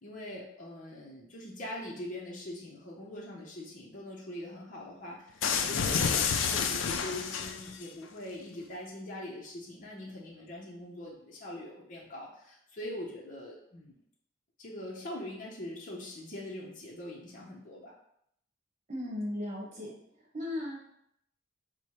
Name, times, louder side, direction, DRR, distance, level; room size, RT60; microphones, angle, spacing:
voice 1, 0.0-14.0 14.6-17.9, left 1 dB, 45° left, -4 dB, 0.7 m, -42 dB
sound 1, 5.4-7.9, left 6 dB, 85° left, 0.4 m, -29 dB
voice 2, 18.9-20.0 20.3-20.8, left 1 dB, 40° right, -2 dB, 1.1 m, -36 dB
4.3 x 2.1 x 4.6 m, 0.71 s
head